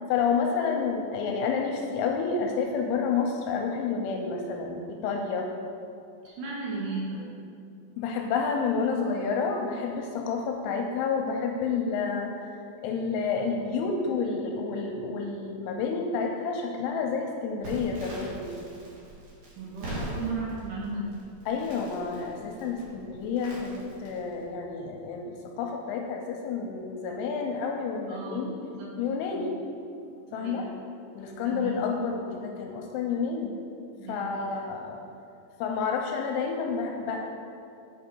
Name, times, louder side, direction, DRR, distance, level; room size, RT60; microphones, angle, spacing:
voice 1, 0.1-5.5 8.0-12.3 12.8-18.5 21.5-28.5 29.0-29.6 30.3-30.6 31.2-33.5 34.1-35.0 35.6-37.3, left 5 dB, 85° left, 2 dB, 2.8 m, -29 dB
voice 2, 6.2-7.3 19.6-21.2 28.1-28.9 29.3-29.5 30.3-30.7 31.4-31.7 34.0-34.6, right 3 dB, 75° right, -5 dB, 2.6 m, -35 dB
Crackle, 17.6-24.4, right 1 dB, 55° right, 2.5 m, -42 dB
8.4 x 5.4 x 4.5 m, 2.5 s
omnidirectional pair, 5.7 m